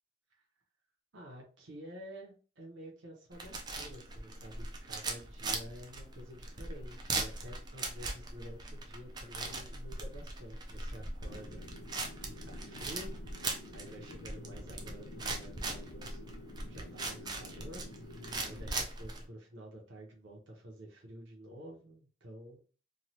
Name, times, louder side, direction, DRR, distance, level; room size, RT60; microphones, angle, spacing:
voice 1, 1.1-11.6 12.3-13.2 13.7-16.3 16.6-17.9 18.4-22.6, equal, 75° right, -1 dB, 0.8 m, -50 dB
sound 1, 3.3-19.2, right 3 dB, 20° right, 0.4 m, -40 dB
sound 2, 11.2-18.8, left 1 dB, 90° left, 0.6 m, -50 dB
3.1 x 2.3 x 2.7 m, 0.38 s
head